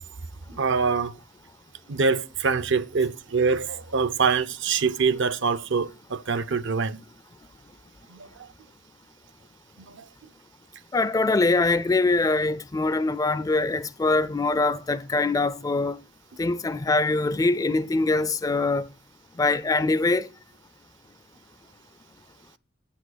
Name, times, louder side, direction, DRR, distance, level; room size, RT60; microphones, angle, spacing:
voice 1, 0.6-1.1 1.9-7.0 8.1-8.3, right 5 dB, 70° right, 0.6 m, -24 dB
voice 2, 10.9-16.0 16.4-18.9 19.4-20.3, left 3 dB, 20° left, 0.4 m, -23 dB
8.4 x 7.3 x 6.3 m
head